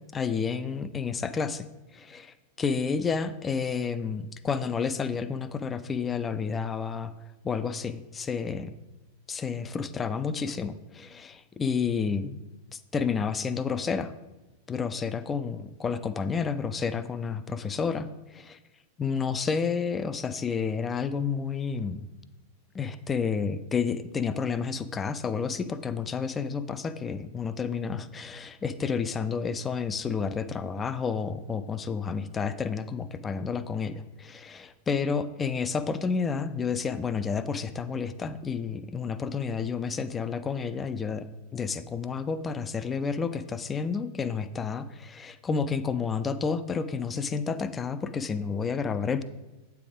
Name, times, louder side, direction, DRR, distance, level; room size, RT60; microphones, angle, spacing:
voice 1, 0.1-1.7 1.9-7.1 7.4-8.7 9.3-12.4 12.7-14.1 14.7-18.6 19.0-22.1 22.7-41.3 41.5-49.2, left 5 dB, 20° left, 12 dB, 0.4 m, -30 dB
8.3 x 3.5 x 5.0 m, 1.1 s
figure-of-eight pair, 90°, 0 cm